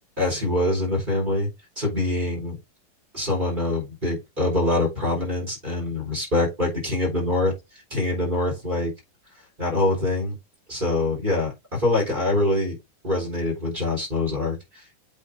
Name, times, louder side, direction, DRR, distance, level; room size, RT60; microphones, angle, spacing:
voice 1, 0.2-1.5 1.8-2.6 3.1-7.5 7.9-8.9 9.6-10.4 10.7-12.8 13.0-14.8, left 2 dB, 25° right, 3.8 m, -24 dB
8.1 x 3.6 x 3.7 m
omnidirectional pair, 2.1 m